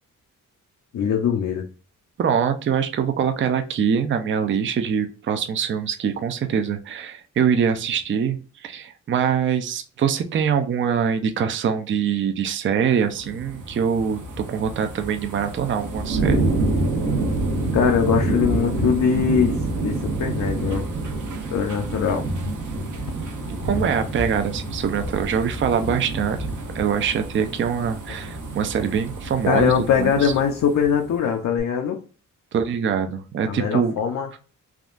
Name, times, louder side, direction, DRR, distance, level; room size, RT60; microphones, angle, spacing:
voice 1, 0.9-1.6 17.7-20.9 21.5-22.2 29.4-32.0 33.5-34.3, left 7 dB, 60° left, 2 dB, 0.5 m, -22 dB
voice 2, 2.2-16.5 23.6-26.4 26.7-29.7 30.0-30.3 32.5-34.0, right 7 dB, 40° right, 8 dB, 0.4 m, -23 dB
sound 1, 13.0-31.2 31.6-31.7, right 2 dB, 65° right, 0.8 m, -28 dB
3.6 x 2.3 x 2.4 m, 0.36 s
cardioid pair, 105°, 33 cm